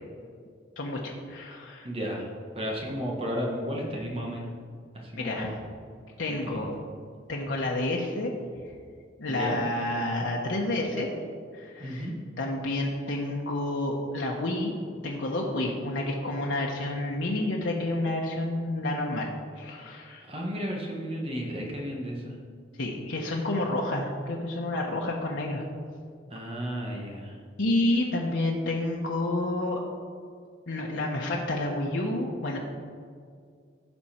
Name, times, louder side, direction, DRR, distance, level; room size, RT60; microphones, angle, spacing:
voice 1, 0.8-1.9 5.2-5.5 6.2-6.7 7.3-8.3 9.2-11.1 11.5-12.1 12.4-14.7 15.0-19.3 19.6-20.2 22.8-25.6 26.3-26.5 27.6-29.8 30.7-32.6, left 1 dB, 85° left, -2 dB, 1.1 m, -29 dB
voice 2, 1.8-2.3 2.5-4.5 4.9-5.6 6.3-6.8 9.2-9.6 11.8-12.2 20.3-22.3 26.3-27.4, equal, 30° right, -1 dB, 1.5 m, -33 dB
15.5 x 5.5 x 4.4 m, 2.1 s
head